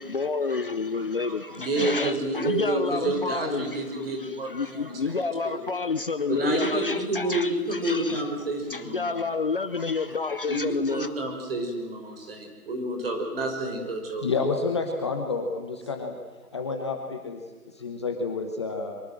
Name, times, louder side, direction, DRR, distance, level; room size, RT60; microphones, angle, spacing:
voice 1, 0.0-3.8 4.2-8.2 8.7-11.1, left 4 dB, 35° left, 11 dB, 0.8 m, -29 dB
voice 2, 0.9-5.6 6.3-9.1 10.0-10.1 10.5-10.6 10.9-14.3, right 2 dB, 40° right, 3 dB, 5.6 m, -29 dB
voice 3, 14.2-16.2 16.5-17.4 17.7-19.0, left 4 dB, 20° left, 3 dB, 1.1 m, -29 dB
24.0 x 23.5 x 7.8 m, 1.3 s
hypercardioid pair, 165°, 45 cm